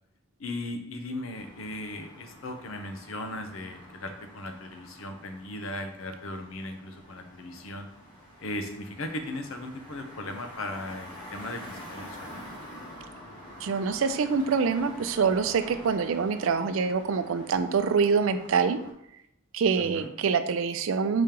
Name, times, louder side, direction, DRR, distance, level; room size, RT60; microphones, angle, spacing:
voice 1, 0.4-7.9 8.4-12.4 19.7-20.1, left 1 dB, 75° left, 6 dB, 0.7 m, -37 dB
sound 1, 1.3-18.9, equal, 20° left, 1.1 m, -47 dB
voice 2, 13.6-18.8 19.5-21.2, right 5 dB, 70° right, 10 dB, 0.4 m, -25 dB
5.0 x 3.7 x 2.9 m, 0.74 s
head